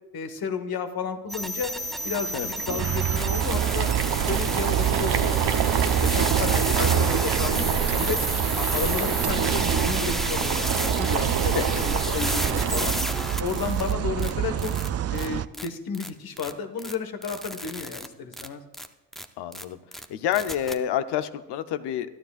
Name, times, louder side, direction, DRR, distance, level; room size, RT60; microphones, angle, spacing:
voice 1, 0.1-1.7 2.0-3.9 4.3-5.4 6.0-8.2 8.5-13.0 13.4-14.7 15.1-18.6, left 6 dB, 60° left, 7 dB, 1.5 m, -32 dB
sound 1, 1.3-13.9 14.2-14.3 14.6-14.9 15.2-15.3 15.5-15.7 15.9-16.1 16.4-16.5 16.8-16.9 17.2-18.1 18.3-18.5 18.7-18.9 19.1-19.2 19.5-19.6 19.9-20.0 20.3-20.8, equal, ahead, 0.7 m, -32 dB
Boiling, 1.9-13.2, right 8 dB, 70° right, 1.0 m, -27 dB
sound 2, 2.8-15.5, right 11 dB, 40° right, 0.4 m, -28 dB
voice 2, 19.4-19.8 20.1-22.1, left 10 dB, 85° left, 11 dB, 0.8 m, -28 dB
22.5 x 12.0 x 2.5 m, 1.1 s
cardioid pair, 75°, 40 cm